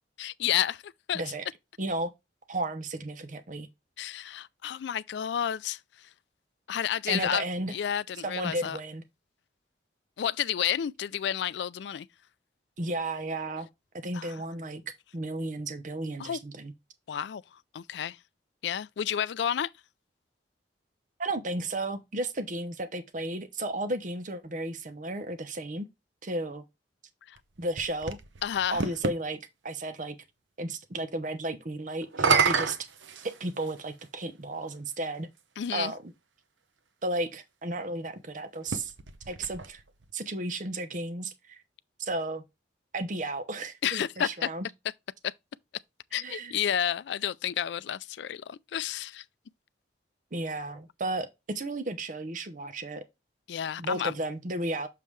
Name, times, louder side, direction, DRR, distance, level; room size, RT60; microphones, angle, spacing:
voice 1, 0.2-1.2 4.0-6.1 6.7-7.4 7.7-8.8 10.2-12.1 14.1-14.4 16.2-16.4 17.1-17.4 17.7-18.2 18.6-19.7 27.3-27.4 28.4-28.8 35.6-35.9 43.8-44.5 45.2-45.3 46.1-49.2 53.5-54.1, left 9 dB, 70° left, 0.3 m, -31 dB
voice 2, 1.8-2.1 2.5-3.7 7.1-7.7 8.2-9.0 12.8-13.7 13.9-14.8 15.1-16.7 21.2-25.9 26.2-26.6 27.6-28.2 28.7-30.2 30.6-32.8 33.2-35.3 35.7-36.0 37.0-38.9 39.3-39.8 40.1-41.6 42.0-42.4 42.9-44.7 46.2-46.6 50.3-53.0 53.8-54.9, right 2 dB, 45° right, 0.8 m, -33 dB
sound 1, 27.4-29.2 32.0-33.8 34.7-34.8 38.6-40.1, right 5 dB, 90° right, 0.8 m, -29 dB
6.7 x 5.3 x 3.1 m
head